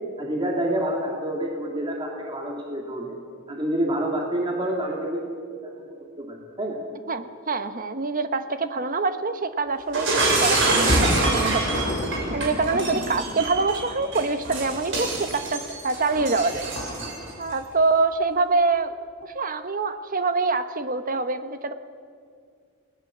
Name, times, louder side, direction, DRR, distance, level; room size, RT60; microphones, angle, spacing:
voice 1, 0.2-3.2 3.5-5.9 6.2-6.8, right 1 dB, 20° right, -1 dB, 2.5 m, -28 dB
voice 2, 7.1-10.1 10.4-11.8 12.3-16.7 17.4-19.0 19.2-21.7, right 3 dB, 40° right, 9 dB, 1.2 m, -25 dB
Shatter, 9.9-17.3, right 2 dB, 60° right, 7.0 m, -25 dB
29.5 x 19.5 x 7.4 m, 2.2 s
head